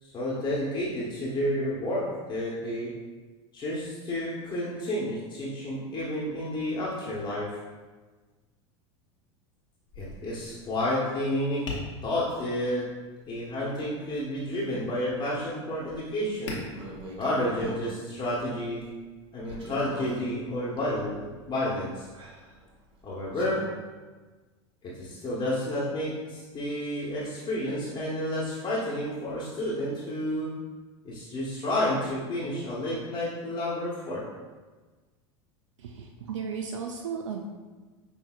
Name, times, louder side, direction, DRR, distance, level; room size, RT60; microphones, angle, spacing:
voice 1, 0.0-2.9 3.5-7.6 10.0-11.7 12.0-12.9 13.3-16.6 17.2-18.9 19.3-22.1 23.0-23.7 24.8-30.6 31.0-34.3, left 1 dB, 30° left, -6 dB, 1.0 m, -30 dB
Tap, 9.9-19.5, left 3 dB, 85° left, 1.1 m, -45 dB
sound 1, 16.7-18.0 19.4-23.6, right 1 dB, 35° right, 1.0 m, -44 dB
voice 2, 35.8-37.5, right 6 dB, 90° right, 2 dB, 0.4 m, -35 dB
6.1 x 3.1 x 2.3 m, 1.3 s
hypercardioid pair, 95°, 15 cm